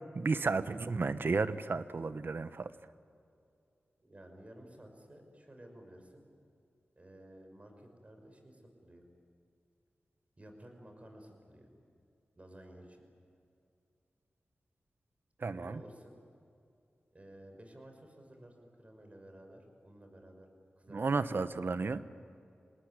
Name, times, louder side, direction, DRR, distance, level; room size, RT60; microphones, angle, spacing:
voice 1, 0.0-2.7 15.4-15.8 20.9-22.0, right 4 dB, 60° right, 13 dB, 1.0 m, -33 dB
voice 2, 4.0-6.2 7.0-9.0 10.4-11.7 12.4-13.1 15.5-16.2 17.1-20.5 20.8-21.0 21.3-21.4, right 1 dB, 35° right, 4 dB, 5.8 m, -54 dB
26.5 x 19.5 x 9.8 m, 2.5 s
cardioid pair, 50°, 4 cm